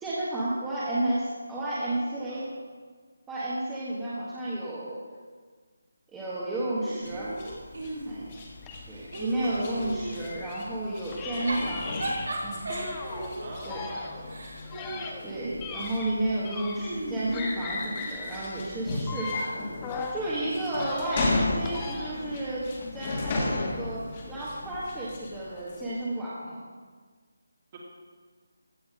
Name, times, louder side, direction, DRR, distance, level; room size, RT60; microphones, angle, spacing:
voice 1, 0.0-2.5 3.3-5.0 6.1-7.3 8.0-8.4 8.9-11.9 12.4-12.7 13.6-13.8 15.2-19.6 20.1-22.7 22.9-26.6, right 1 dB, 10° right, -9 dB, 1.4 m, -32 dB
voice 2, 1.9-2.6 13.4-14.5 27.7-27.8, right 2 dB, 30° right, -3 dB, 2.3 m, -45 dB
Giggle / Chuckle chortle, 6.8-8.4 8.8-10.3 11.2-15.7 16.8-18.2, right 2 dB, 70° right, 3.0 m, -36 dB
sound 1, 7.0-25.9, left 2 dB, 30° left, 1.8 m, -36 dB
sound 2, 8.6-10.7 11.1-13.3 13.6-17.1 17.3-20.2 20.6-22.3, left 4 dB, 15° left, 0.9 m, -38 dB
15.5 x 6.0 x 4.9 m, 1.5 s
figure-of-eight pair, 165°, 0 cm